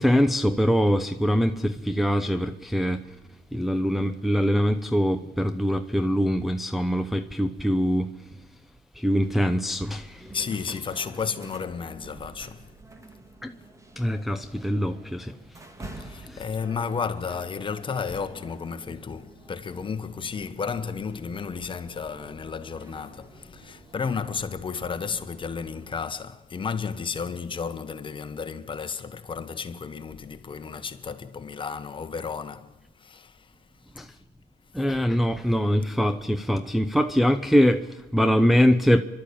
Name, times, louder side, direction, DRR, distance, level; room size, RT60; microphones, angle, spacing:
voice 1, 0.0-3.1 3.5-8.2 9.0-10.3 13.4-13.5 14.0-15.4 16.0-16.4 34.0-34.1 34.7-39.0, equal, ahead, 0.7 m, -23 dB
sound 1, 9.1-26.1, right 2 dB, 20° right, 2.2 m, -48 dB
voice 2, 10.3-12.6 16.0-33.5, left 5 dB, 30° left, 1.4 m, -33 dB
30.0 x 12.5 x 8.7 m
cardioid pair, 110°, 17 cm